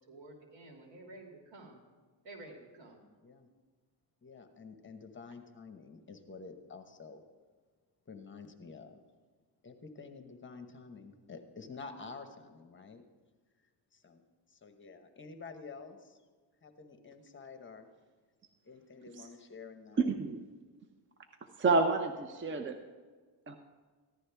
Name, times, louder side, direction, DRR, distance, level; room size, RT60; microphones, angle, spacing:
voice 1, 0.1-1.8 2.2-3.0, right 2 dB, 75° right, 1 dB, 2.5 m, -51 dB
voice 2, 4.2-7.2 8.1-9.0 9.6-13.0 13.9-16.2 16.6-17.9 18.6-20.1, left 4 dB, 30° left, 7 dB, 1.0 m, -49 dB
voice 3, 20.0-20.4 21.6-22.8 23.5-23.6, right 3 dB, 30° right, 6 dB, 0.6 m, -29 dB
14.5 x 11.5 x 3.4 m, 1.4 s
cardioid pair, 120°, 42 cm